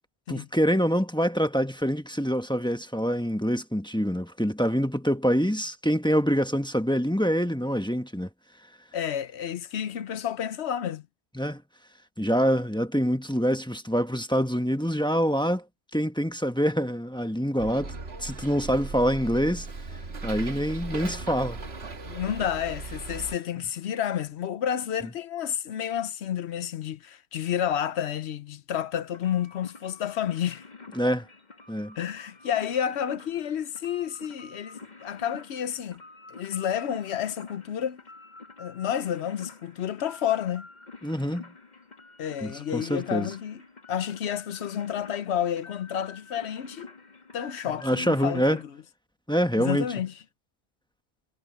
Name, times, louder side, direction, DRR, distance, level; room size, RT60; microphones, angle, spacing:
voice 1, 0.3-8.3 11.3-11.6 12.2-15.6 15.9-17.9 18.2-19.7 20.2-21.6 30.9-31.3 31.7-31.9 41.0-41.5 42.4-43.3 47.8-48.6 49.3-49.9, equal, 5° left, 1.1 m, -25 dB
voice 2, 8.9-11.1 22.0-30.6 32.0-36.0 36.3-38.0 38.6-40.7 42.2-43.6 43.9-46.9 47.3-48.7 49.6-50.1, left 9 dB, 80° left, 1.0 m, -30 dB
Bus, 17.6-23.4, right 3 dB, 70° right, 1.9 m, -37 dB
sound 1, 29.1-48.6, left 4 dB, 40° left, 2.1 m, -48 dB
omnidirectional pair, 1.1 m